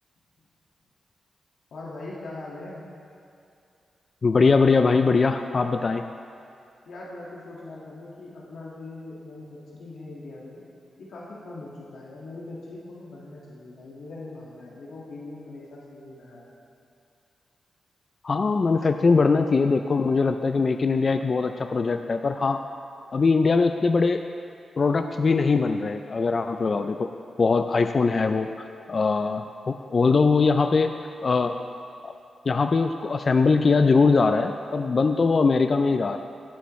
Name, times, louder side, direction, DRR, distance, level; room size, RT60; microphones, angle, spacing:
voice 1, 1.7-2.8 6.9-10.6 11.0-16.5, left 2 dB, 85° left, -6 dB, 1.8 m, -41 dB
voice 2, 4.2-6.0 18.2-22.6 23.1-24.2 24.8-27.1 27.4-30.9 31.2-31.5 32.0-32.1 32.5-36.2, left 4 dB, 40° left, 7 dB, 0.3 m, -21 dB
16.0 x 8.8 x 3.1 m, 2.5 s
wide cardioid pair, 120°, 0 cm